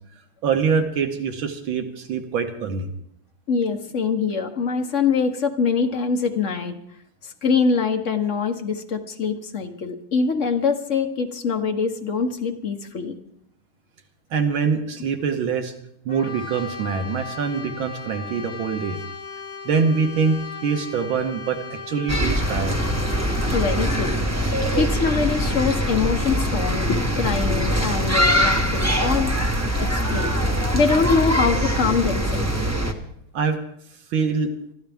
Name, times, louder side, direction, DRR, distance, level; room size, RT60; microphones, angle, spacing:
voice 1, 0.4-2.9 14.3-15.7 16.1-19.0 19.7-22.8 33.3-33.6 34.1-34.5, right 5 dB, 75° right, 6 dB, 1.9 m, -24 dB
voice 2, 3.5-6.8 7.2-13.2 23.5-24.1 24.4-29.3 29.8-30.3 30.7-32.5, left 5 dB, 45° left, 5 dB, 1.1 m, -24 dB
Brass instrument, 16.1-24.3, left 5 dB, 65° left, 2.7 m, -37 dB
sound 1, 22.1-32.9, equal, 15° right, 0.7 m, -22 dB
24.5 x 13.0 x 3.5 m, 0.73 s
omnidirectional pair, 2.2 m